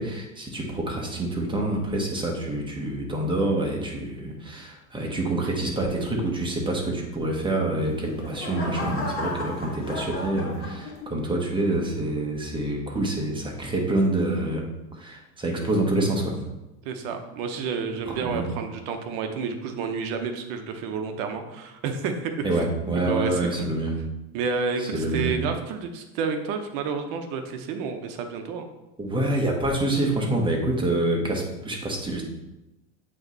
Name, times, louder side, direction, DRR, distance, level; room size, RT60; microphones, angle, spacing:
voice 1, 0.0-14.6 15.0-16.3 18.1-18.4 22.4-24.0 24.9-25.4 29.0-32.2, right 1 dB, 10° right, 0 dB, 1.3 m, -26 dB
sound 1, 7.7-11.3 11.8-12.2, left 2 dB, 30° left, 1.6 m, -34 dB
voice 2, 16.8-22.6 23.0-23.7 24.3-28.7, right 5 dB, 50° right, 6 dB, 1.0 m, -30 dB
7.8 x 3.2 x 4.0 m, 0.96 s
supercardioid pair, 115°, 43 cm